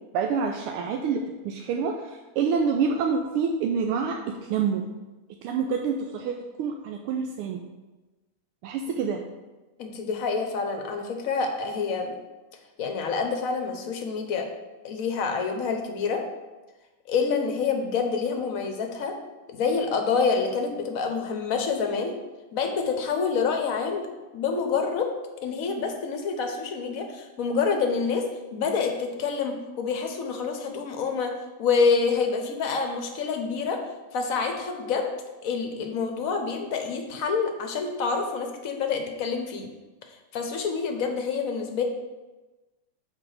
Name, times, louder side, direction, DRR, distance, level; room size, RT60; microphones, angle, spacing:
voice 1, 0.1-4.8 5.4-7.6 8.6-9.2, right 5 dB, 85° right, 2 dB, 1.5 m, -27 dB
voice 2, 9.8-12.1 12.8-14.5 14.8-16.2 17.1-19.2 19.5-22.1 22.5-24.1 24.3-25.1 25.4-31.3 31.6-33.8 34.1-35.1 35.4-39.7 40.3-41.8, left 5 dB, 55° left, 4 dB, 1.0 m, -27 dB
5.9 x 4.7 x 6.5 m, 1.1 s
omnidirectional pair, 2.4 m